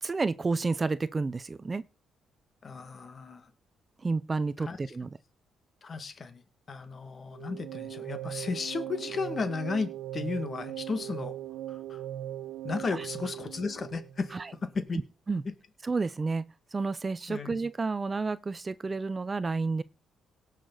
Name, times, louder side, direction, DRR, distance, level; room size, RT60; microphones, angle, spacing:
voice 1, 0.0-1.8 4.0-5.1 12.9-13.1 14.3-14.5 15.3-15.4 15.8-19.8, right 4 dB, 30° right, 0.6 m, -30 dB
voice 2, 2.6-3.5 4.6-4.8 5.8-6.4 6.7-11.4 11.7-12.0 12.6-14.4 14.6-15.0 17.3-17.6, left 4 dB, 40° left, 1.9 m, -34 dB
sound 1, 7.3-14.5, right 12 dB, 85° right, 0.8 m, -39 dB
18.0 x 6.6 x 4.0 m
cardioid pair, 90°, 0 cm